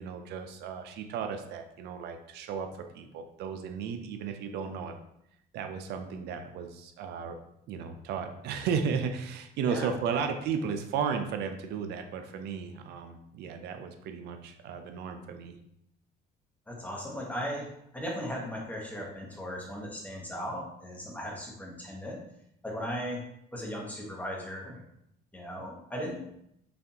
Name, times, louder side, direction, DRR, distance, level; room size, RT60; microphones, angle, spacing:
voice 1, 0.0-5.0 5.5-7.4 7.7-15.6, right 6 dB, 75° right, 6 dB, 0.5 m, -34 dB
voice 2, 9.6-10.3 16.7-22.2 22.6-23.2 23.5-24.8 25.3-26.2, equal, 10° left, -2 dB, 1.1 m, -37 dB
4.1 x 3.3 x 2.8 m, 0.76 s
cardioid pair, 110°, 17 cm